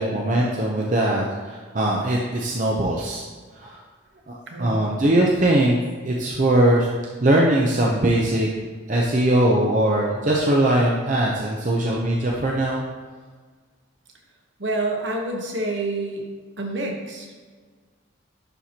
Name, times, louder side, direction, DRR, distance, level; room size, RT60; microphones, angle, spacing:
voice 1, 0.0-3.2 3.5-3.8 4.3-5.8 6.0-6.9 7.2-8.5 8.9-12.8, right 1 dB, 40° right, -2 dB, 0.6 m, -21 dB
voice 2, 4.5-4.8 14.6-16.2 16.6-17.3, right 2 dB, 60° right, 1 dB, 1.1 m, -28 dB
11.0 x 4.3 x 2.8 m, 1.5 s
head